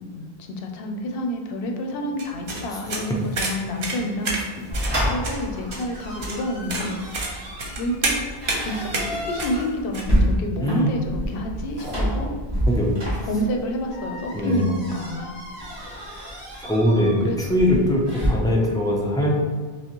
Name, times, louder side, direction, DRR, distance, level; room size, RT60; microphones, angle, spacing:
voice 1, 0.0-4.4 5.0-7.0 7.8-8.2 8.6-12.3 13.2-15.3 17.2-17.4, equal, 70° left, 3 dB, 0.7 m, -29 dB
sound 1, 2.2-10.0, right 2 dB, 60° right, 0.9 m, -30 dB
sound 2, 4.7-18.3, equal, 25° right, 1.5 m, -29 dB
voice 2, 10.6-10.9 12.8-12.9 14.3-14.6 16.6-19.3, equal, 5° left, -3 dB, 0.3 m, -21 dB
5.8 x 2.0 x 2.9 m, 1.4 s
omnidirectional pair, 1.0 m